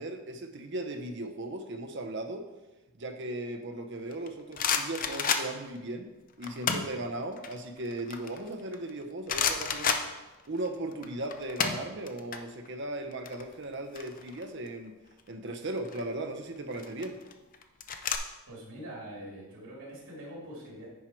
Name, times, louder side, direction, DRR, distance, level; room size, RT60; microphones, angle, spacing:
voice 1, 0.0-2.5 3.0-6.1 6.4-10.0 10.5-14.9 15.3-17.2, right 2 dB, 55° right, 5 dB, 0.8 m, -37 dB
sound 1, 4.1-5.8 6.4-7.0 7.4-8.9 9.3-10.7 10.9-12.4 12.6-12.8 13.1-14.7 15.6-16.0 16.7-18.2, left 6 dB, 40° left, 0.5 m, -31 dB
voice 2, 18.5-20.9, right 1 dB, 90° right, -5 dB, 2.5 m, -44 dB
10.0 x 4.5 x 4.6 m, 1.1 s
head